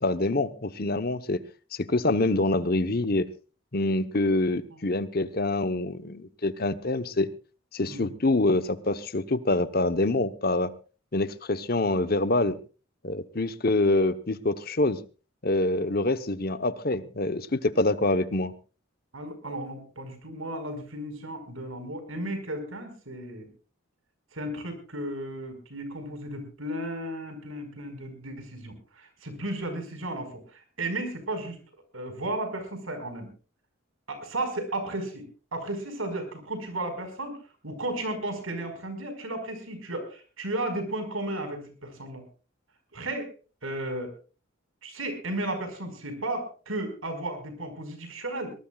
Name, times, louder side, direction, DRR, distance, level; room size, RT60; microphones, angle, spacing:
voice 1, 0.0-1.4 1.7-3.3 3.7-7.3 7.7-10.7 11.1-12.6 13.0-15.0 15.4-18.5, left 2 dB, 45° left, 12 dB, 1.0 m, -26 dB
voice 2, 19.1-23.5 24.3-31.6 31.9-33.3 34.1-35.2 35.5-37.4 37.6-42.2 42.9-43.3 43.6-44.1 44.8-48.5, right 1 dB, 85° right, 8 dB, 5.1 m, -34 dB
23.0 x 19.0 x 2.4 m, 0.35 s
head